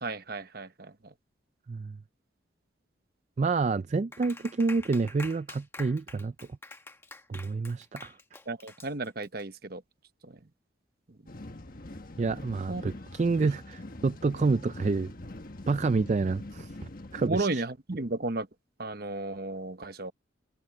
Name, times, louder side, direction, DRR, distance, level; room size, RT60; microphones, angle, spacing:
voice 1, 0.0-1.1 8.5-9.8 10.2-10.4 12.7-12.8 17.2-18.5 18.8-20.1, right 2 dB, 50° right, 1.0 m, -33 dB
voice 2, 3.4-6.3 7.3-8.1 12.2-15.1 15.7-16.7 17.1-17.6, right 4 dB, 35° right, 0.3 m, -28 dB
Clapping, 4.1-9.4, left 2 dB, 10° left, 1.4 m, -46 dB
sound 1, 11.3-17.3, left 1 dB, 45° left, 1.5 m, -43 dB
head